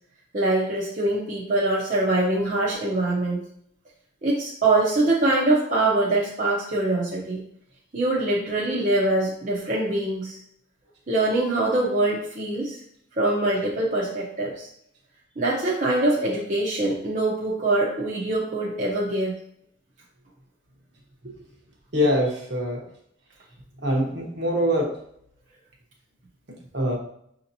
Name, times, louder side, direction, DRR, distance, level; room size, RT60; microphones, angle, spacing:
voice 1, 0.3-3.4 4.2-7.4 7.9-10.4 11.1-12.8 13.2-14.7 15.4-19.4, right 2 dB, 40° right, -5 dB, 0.7 m, -23 dB
voice 2, 21.9-22.8 23.8-24.9 26.7-26.9, equal, 60° right, -1 dB, 1.1 m, -23 dB
6.1 x 2.9 x 2.6 m, 0.69 s
head